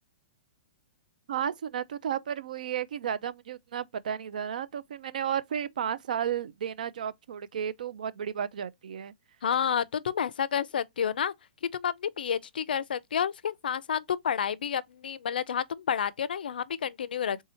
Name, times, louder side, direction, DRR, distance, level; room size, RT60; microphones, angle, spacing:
voice 1, 1.3-9.1, right 9 dB, 60° right, 0.4 m, -33 dB
voice 2, 9.4-11.3 11.7-17.4, left 8 dB, 90° left, 0.4 m, -30 dB
3.6 x 2.7 x 4.2 m
hypercardioid pair, 175°, 5 cm